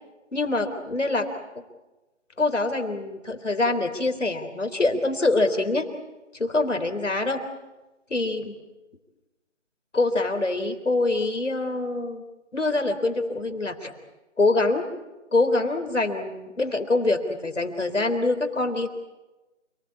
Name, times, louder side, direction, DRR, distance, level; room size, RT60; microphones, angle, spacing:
voice 1, 0.3-1.3 1.6-1.7 2.4-5.9 6.3-7.4 8.1-8.6 9.9-12.2 12.5-13.9 14.4-14.9 15.3-18.9, left 2 dB, 75° left, 8 dB, 4.0 m, -24 dB
28.5 x 20.5 x 8.5 m, 1.1 s
figure-of-eight pair, 165°, 37 cm